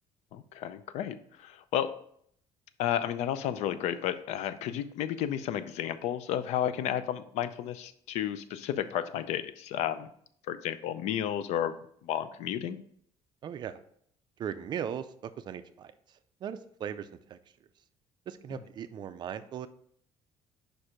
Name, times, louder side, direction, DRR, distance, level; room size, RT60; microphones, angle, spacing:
voice 1, 0.3-1.9 2.8-10.1 10.5-11.7 12.0-12.8, left 10 dB, 75° left, 13 dB, 0.5 m, -32 dB
voice 2, 13.4-13.8 14.4-15.9 16.4-17.4 18.3-19.7, right 8 dB, 40° right, 12 dB, 0.4 m, -38 dB
5.2 x 4.5 x 4.9 m, 0.65 s
cardioid pair, 150°, 12 cm